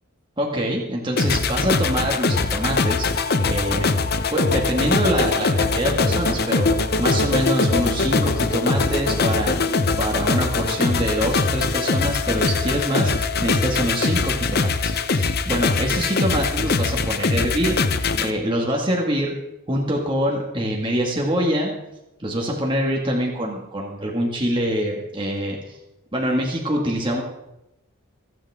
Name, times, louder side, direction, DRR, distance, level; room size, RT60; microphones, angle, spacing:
voice 1, 0.4-3.9 4.3-14.7 15.1-17.8 18.2-19.3 19.7-21.7 22.2-25.6 26.1-27.2, equal, 25° right, -2 dB, 2.0 m, -25 dB
sound 1, 1.2-18.3, left 3 dB, 45° left, 0.8 m, -22 dB
27.5 x 9.2 x 3.7 m, 0.91 s
head